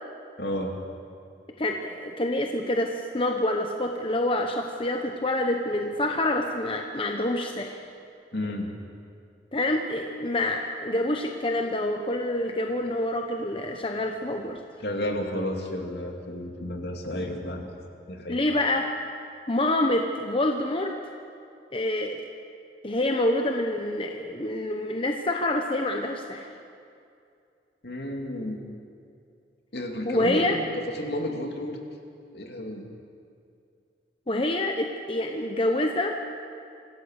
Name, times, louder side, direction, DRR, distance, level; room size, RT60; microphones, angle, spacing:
voice 1, 0.4-0.7 8.3-8.7 14.8-17.7 18.1-18.5 27.8-28.6 29.7-31.8 32.3-32.9, left 1 dB, 65° left, 2 dB, 2.6 m, -32 dB
voice 2, 1.6-7.8 9.5-14.6 18.3-18.9 19.5-20.9 21.7-22.3 22.8-26.5 30.0-30.6 34.3-36.2, left 1 dB, 30° left, 3 dB, 1.0 m, -27 dB
26.0 x 16.5 x 6.5 m, 2.4 s
head